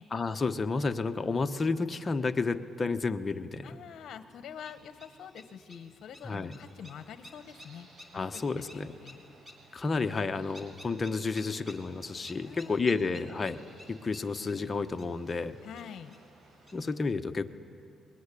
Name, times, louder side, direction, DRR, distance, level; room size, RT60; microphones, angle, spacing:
voice 1, 0.1-3.7 6.2-6.6 8.1-8.9 9.7-13.6 13.9-15.6 16.7-17.6, left 4 dB, 30° left, 7 dB, 1.1 m, -31 dB
voice 2, 3.6-7.9 8.1-9.3 12.4-13.2 15.6-16.2, left 8 dB, 65° left, 10 dB, 1.1 m, -46 dB
sound 1, 4.3-17.0, equal, 10° right, 3.7 m, -55 dB
sound 2, 6.6-16.9, right 3 dB, 75° right, 7.2 m, -60 dB
21.5 x 20.5 x 10.0 m, 2.5 s
cardioid pair, 90°, 0 cm